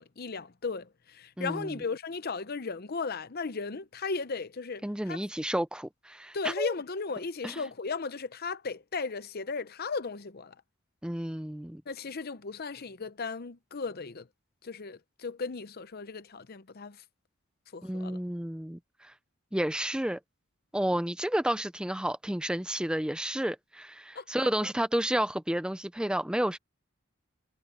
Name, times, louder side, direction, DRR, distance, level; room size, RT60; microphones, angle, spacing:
voice 1, 0.0-5.2 6.3-10.5 11.9-14.3 14.6-17.0 17.7-18.2 24.1-24.5, left 4 dB, 50° left, 0.7 m, -36 dB
voice 2, 1.4-1.7 4.8-6.7 7.4-7.5 11.0-11.8 17.8-19.1 19.5-20.2 20.7-26.6, right 1 dB, 5° right, 0.5 m, -31 dB
head